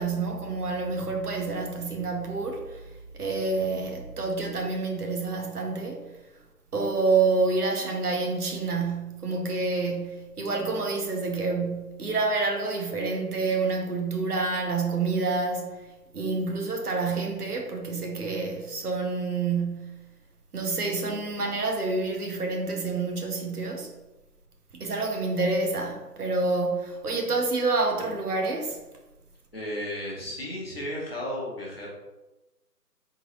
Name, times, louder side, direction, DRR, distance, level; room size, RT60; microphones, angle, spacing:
voice 1, 0.0-2.8 3.1-6.1 6.7-20.0 20.5-23.9 24.7-28.8, right 3 dB, 70° right, 0.9 m, -28 dB
voice 2, 29.5-31.9, left 1 dB, 35° left, 1.0 m, -34 dB
3.8 x 3.7 x 3.0 m
figure-of-eight pair, 170°, 48 cm